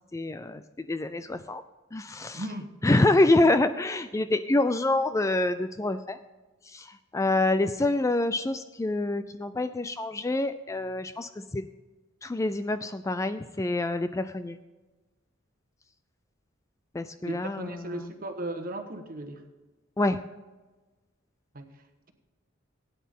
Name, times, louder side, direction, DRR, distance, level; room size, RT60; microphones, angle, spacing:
voice 1, 0.1-1.6 1.9-2.4 2.8-6.2 6.7-11.6 12.2-14.6 16.9-18.1 20.0-20.2, left 2 dB, 15° left, 11 dB, 0.4 m, -26 dB
voice 2, 2.3-2.8 17.2-19.4 21.5-21.7, right 1 dB, 45° right, 6 dB, 1.3 m, -36 dB
17.0 x 9.4 x 3.7 m, 1.2 s
head